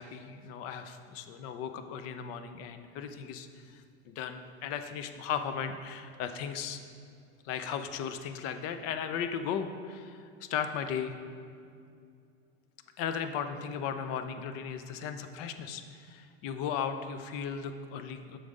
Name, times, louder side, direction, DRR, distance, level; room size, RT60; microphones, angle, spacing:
voice 1, 0.0-6.8 7.4-11.1 13.0-18.4, left 7 dB, 50° left, 8 dB, 0.6 m, -36 dB
7.6 x 5.4 x 3.7 m, 2.3 s
hypercardioid pair, 110°, 31 cm